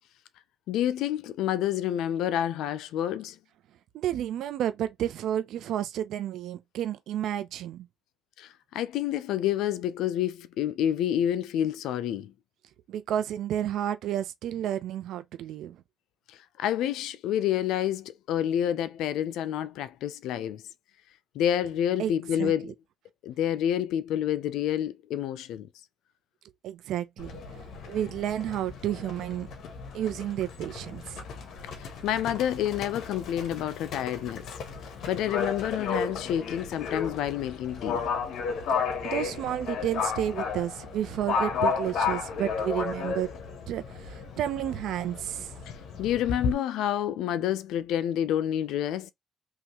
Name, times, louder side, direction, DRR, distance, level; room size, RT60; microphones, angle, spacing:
voice 1, 0.7-3.4 8.4-12.3 16.3-20.6 21.3-22.7 23.2-25.7 31.8-34.4 35.1-38.0 45.7-49.1, left 10 dB, 90° left, 0.5 m, -28 dB
voice 2, 3.9-7.9 12.9-15.8 22.0-22.1 22.4-22.7 26.6-29.5 29.9-31.2 39.0-43.3 43.7-45.5, right 11 dB, 80° right, 0.7 m, -31 dB
Livestock farm animals working animals, 27.2-46.5, left 5 dB, 75° left, 1.2 m, -33 dB
3.7 x 3.1 x 3.0 m
cardioid pair, 90°, 0 cm